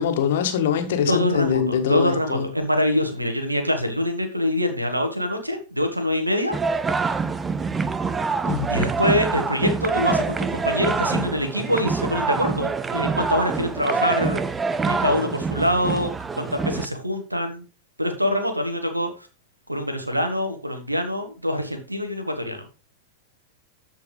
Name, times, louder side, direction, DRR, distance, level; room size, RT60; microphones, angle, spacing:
voice 1, 0.0-2.5 8.4-8.7, left 8 dB, 55° left, 1.5 m, -23 dB
voice 2, 1.1-6.6 8.7-14.4 14.8-17.6 18.0-19.1 19.7-22.7, left 1 dB, 85° right, 1.6 m, -24 dB
sound 1, 6.5-16.9, right 4 dB, 15° right, 0.5 m, -25 dB
13.5 x 4.5 x 3.2 m
figure-of-eight pair, 90°, 0 cm